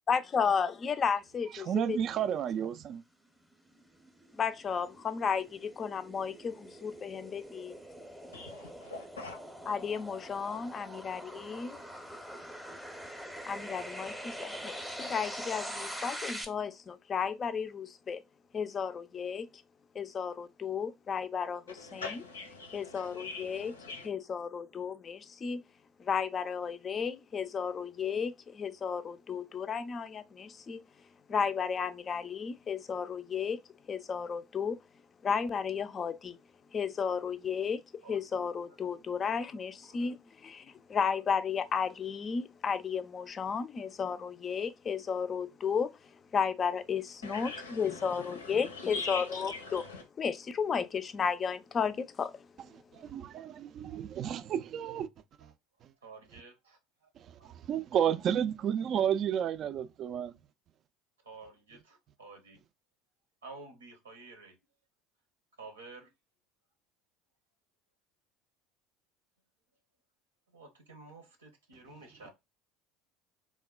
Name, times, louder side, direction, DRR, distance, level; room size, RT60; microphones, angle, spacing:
voice 1, 0.1-2.0 4.4-7.8 9.7-11.8 13.5-18.2 18.5-19.5 19.9-22.1 22.7-23.7 24.0-25.6 26.0-30.8 31.3-33.6 33.9-34.8 35.2-36.4 36.7-37.8 38.1-45.9 46.3-49.8 50.2-52.4, left 6 dB, 35° left, 0.4 m, -33 dB
voice 2, 1.5-3.0 52.9-55.1 55.4-55.5 55.8-55.9 57.2-60.4, right 9 dB, 45° right, 0.3 m, -32 dB
sound 1, 3.3-16.5, equal, ahead, 0.7 m, -44 dB
voice 3, 8.3-9.4 21.7-24.1 47.2-50.0, left 3 dB, 85° left, 0.6 m, -42 dB
voice 4, 39.0-39.4 39.9-40.1 56.0-57.1 57.4-57.6 61.2-62.6 63.4-64.6 65.6-66.1 70.5-72.3, right 3 dB, 85° right, 0.7 m, -51 dB
3.3 x 2.1 x 2.2 m
hypercardioid pair, 70°, 0 cm